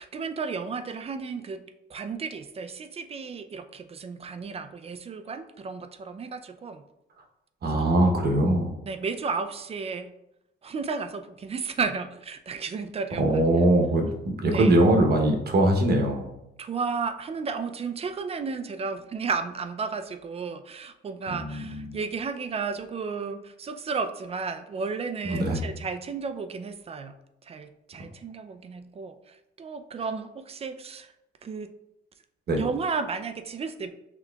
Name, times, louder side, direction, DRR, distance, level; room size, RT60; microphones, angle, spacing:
voice 1, 0.0-6.8 7.6-7.8 8.9-10.1 10.6-13.4 14.5-14.7 16.6-27.2 27.4-31.1 31.4-31.7 32.5-33.9, right 5 dB, 30° right, 9 dB, 0.3 m, -33 dB
voice 2, 7.6-8.7 13.2-16.3 21.3-22.0 25.2-25.6 32.5-32.6, right 1 dB, 55° right, 3 dB, 0.9 m, -22 dB
5.8 x 2.9 x 2.3 m, 0.88 s
cardioid pair, 90°, 20 cm